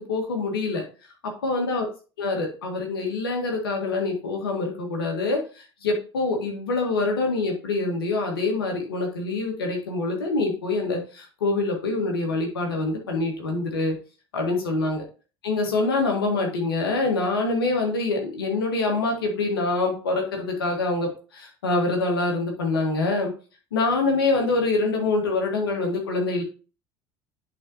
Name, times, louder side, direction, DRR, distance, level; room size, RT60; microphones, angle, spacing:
voice 1, 0.1-0.8 1.2-1.9 2.2-13.9 14.3-15.0 15.4-23.3 23.7-26.4, left 3 dB, 70° left, 2 dB, 1.9 m, -25 dB
10.5 x 4.2 x 2.9 m, 0.36 s
figure-of-eight pair, 60°, 12 cm